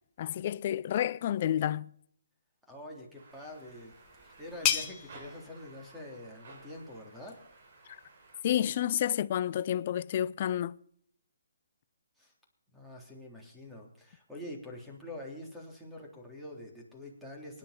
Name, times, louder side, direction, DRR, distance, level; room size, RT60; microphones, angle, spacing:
voice 1, 0.2-1.9 8.4-10.8, left 11 dB, 40° left, 0.5 m, -30 dB
voice 2, 2.7-3.9 4.2-7.4 12.2-12.3 12.7-17.6, left 1 dB, 5° right, 3.5 m, -45 dB
sound 1, 3.1-8.4, right 3 dB, 50° right, 5.0 m, -55 dB
sound 2, 3.3-8.7, left 9 dB, 25° left, 1.6 m, -38 dB
24.0 x 11.0 x 4.3 m
figure-of-eight pair, 140°, 0 cm